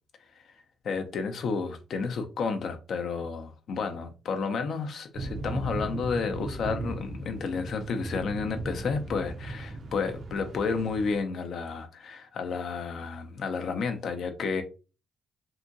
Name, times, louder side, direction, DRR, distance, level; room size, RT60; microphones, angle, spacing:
voice 1, 0.8-14.6, left 5 dB, 60° left, 0.6 m, -31 dB
sound 1, 5.1-11.2, right 2 dB, 55° right, 0.5 m, -37 dB
2.8 x 2.6 x 2.5 m
cardioid pair, 90°, 0 cm